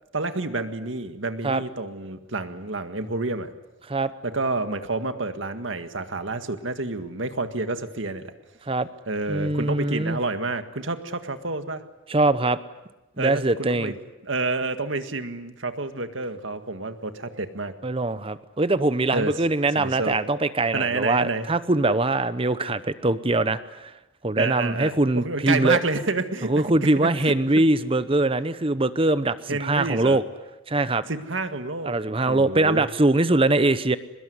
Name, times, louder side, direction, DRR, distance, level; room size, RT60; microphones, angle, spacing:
voice 1, 0.1-3.5 4.2-8.3 9.1-11.8 13.2-13.9 14.2-17.7 19.1-19.3 19.8-20.2 20.7-21.5 24.4-27.1 29.5-30.2 31.1-32.8, right 3 dB, 75° right, 9 dB, 1.8 m, -29 dB
voice 2, 9.3-10.2 12.1-12.6 13.2-13.9 17.8-23.9 24.2-25.8 26.5-30.2 30.7-31.0 31.9-34.0, right 2 dB, 30° right, 14 dB, 0.8 m, -22 dB
23.5 x 21.0 x 9.6 m, 1.0 s
head